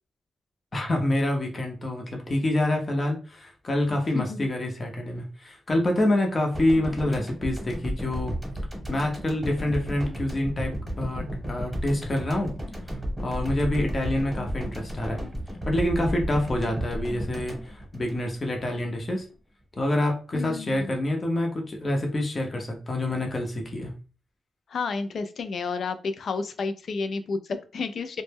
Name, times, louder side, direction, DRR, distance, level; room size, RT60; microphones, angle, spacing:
voice 1, 0.7-8.4 8.9-12.5 13.2-15.2 15.6-19.3 19.8-23.9, left 1 dB, 35° left, 2 dB, 0.7 m, -27 dB
voice 2, 3.9-4.4 20.3-20.9 24.7-28.2, left 4 dB, 65° left, 9 dB, 0.3 m, -31 dB
sound 1, 6.5-18.7 19.0-19.2, equal, 10° right, 1.1 m, -33 dB
2.1 x 2.0 x 3.3 m, 0.35 s
cardioid pair, 75°, 0 cm